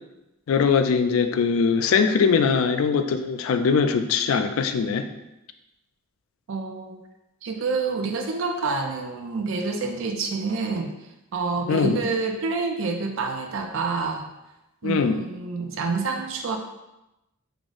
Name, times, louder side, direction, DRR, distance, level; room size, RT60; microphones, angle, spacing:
voice 1, 0.5-5.1 11.7-12.0 14.8-15.2, left 5 dB, 75° left, 8 dB, 0.3 m, -21 dB
voice 2, 6.5-7.0 7.4-10.9 11.3-14.2 14.8-16.6, right 4 dB, 65° right, 3 dB, 0.4 m, -27 dB
4.7 x 2.0 x 3.7 m, 0.94 s
head